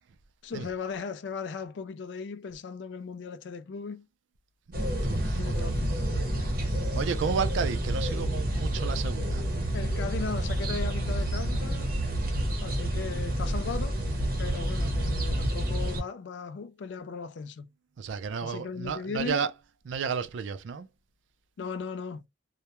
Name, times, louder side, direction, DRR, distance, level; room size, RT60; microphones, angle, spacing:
voice 1, 0.4-4.1 5.4-6.1 9.7-11.9 12.6-14.0 14.4-17.7 18.4-19.4 21.6-22.2, left 5 dB, 75° left, 0.4 m, -37 dB
sound 1, 4.7-16.0, right 1 dB, 50° right, 0.8 m, -29 dB
voice 2, 5.0-5.5 6.1-9.4 18.0-19.5 19.9-20.9, right 6 dB, 85° right, 0.4 m, -33 dB
2.2 x 2.1 x 2.9 m
head